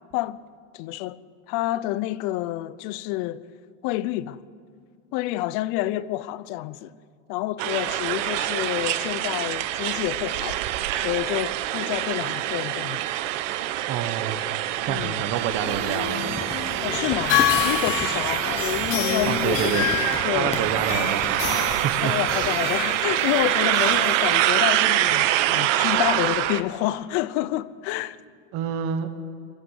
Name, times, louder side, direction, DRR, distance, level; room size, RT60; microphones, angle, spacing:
voice 1, 0.7-1.2 1.5-3.4 3.8-4.4 5.1-6.9 7.3-10.6 10.9-13.0 14.9-15.2 16.8-20.0 20.2-20.6 22.0-28.2, left 15 dB, 40° left, 0.6 m, -28 dB
sound 1, 7.6-26.6, right 14 dB, 65° right, 1.1 m, -25 dB
voice 2, 13.9-14.4 14.8-16.4 19.3-19.9 20.3-22.6 28.5-29.1, right 8 dB, 35° right, 1.2 m, -28 dB
sound 2, 15.4-24.9, left 10 dB, 65° left, 3.1 m, -29 dB
Crumpling crinkling, 16.4-22.5, left 4 dB, 15° left, 1.2 m, -35 dB
23.5 x 15.0 x 8.1 m
supercardioid pair, 155°, 39 cm